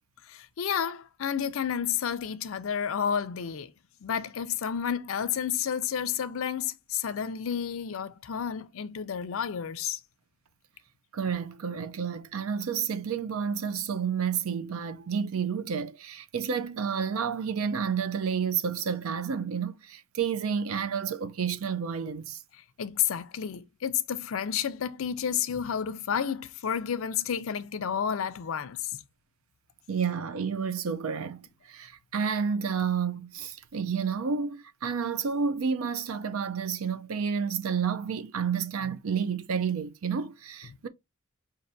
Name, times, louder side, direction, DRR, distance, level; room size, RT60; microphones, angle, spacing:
voice 1, 0.3-3.7 4.0-10.0 22.8-28.8, left 8 dB, 70° left, 0.4 m, -31 dB
voice 2, 11.1-22.4 29.9-40.9, right 6 dB, 80° right, 0.5 m, -30 dB
5.3 x 2.6 x 2.5 m
head